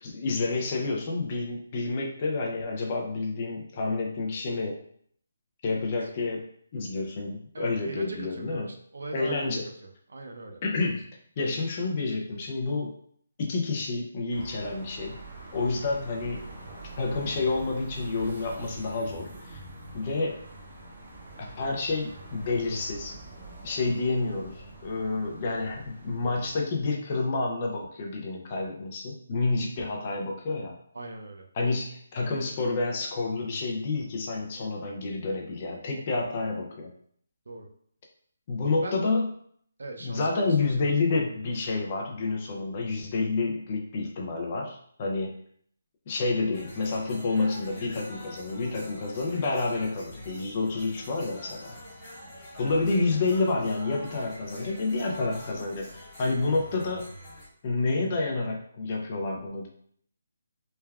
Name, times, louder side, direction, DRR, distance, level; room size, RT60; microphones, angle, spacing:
voice 1, 0.0-4.8 5.6-6.5 6.7-8.7 9.1-9.6 10.6-11.1 11.4-12.9 13.4-15.2 15.5-16.5 17.0-19.6 19.9-20.4 21.4-23.2 23.6-30.8 31.6-36.9 38.5-39.3 40.0-45.3 46.1-51.8 52.6-57.0 57.6-59.7, left 3 dB, 25° left, 0 dB, 0.4 m, -29 dB
voice 2, 5.7-6.1 7.5-10.6 29.8-30.0 30.9-31.5 37.5-37.7 38.8-39.0 39.8-40.9, right 2 dB, 70° right, 3 dB, 0.5 m, -40 dB
sound 1, 14.3-26.6, right 3 dB, 40° right, 0.8 m, -45 dB
sound 2, 46.5-57.5, equal, 10° left, 0.8 m, -45 dB
3.2 x 2.2 x 2.3 m, 0.62 s
hypercardioid pair, 175°, 0 cm